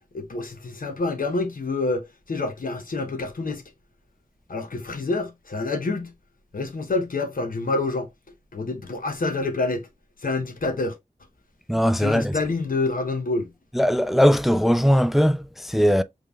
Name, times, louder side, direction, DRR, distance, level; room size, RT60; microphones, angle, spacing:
voice 1, 0.1-3.6 4.5-6.1 6.5-8.1 8.5-9.9 10.2-10.9 12.0-13.5, left 3 dB, 80° left, 0.8 m, -27 dB
voice 2, 11.7-12.3 13.8-16.0, equal, ahead, 0.3 m, -19 dB
5.2 x 3.3 x 2.3 m
wide cardioid pair, 45°, 14 cm